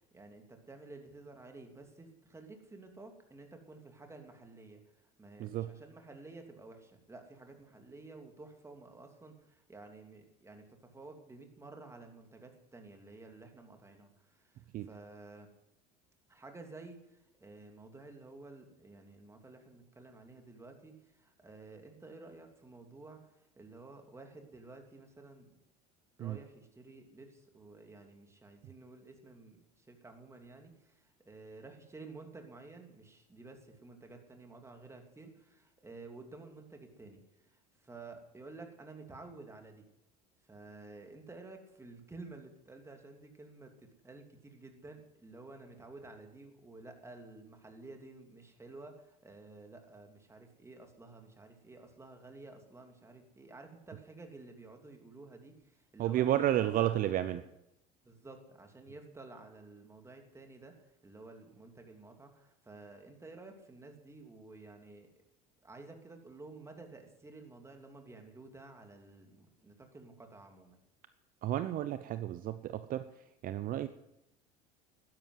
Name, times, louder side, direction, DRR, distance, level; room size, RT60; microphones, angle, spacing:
voice 1, 0.1-4.8 5.2-15.5 16.3-25.5 26.2-39.8 40.5-57.4 58.0-65.1 65.6-70.8, right 3 dB, 15° right, 4 dB, 2.9 m, -52 dB
voice 2, 5.4-5.7 14.7-14.9 26.2-26.4 56.0-57.4 71.4-73.0 73.4-73.9, right 12 dB, 50° right, 12 dB, 0.7 m, -31 dB
12.5 x 10.5 x 7.9 m, 0.85 s
supercardioid pair, 90°, 19 cm